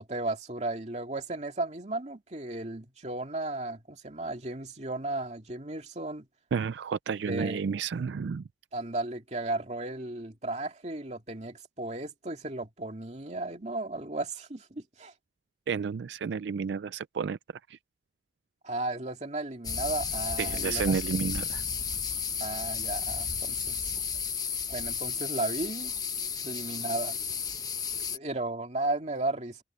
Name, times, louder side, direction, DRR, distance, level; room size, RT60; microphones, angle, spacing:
voice 1, 0.0-6.3 7.3-7.6 8.7-15.1 18.6-21.0 22.4-24.0 24.7-25.9 26.4-27.2 28.1-29.6, right 2 dB, 40° right, 2.3 m, -35 dB
voice 2, 6.5-8.4 15.7-17.4 17.7-17.8 20.4-21.6, right 6 dB, 80° right, 0.4 m, -31 dB
sound 1, 19.6-28.2, left 6 dB, 20° left, 1.0 m, -33 dB
head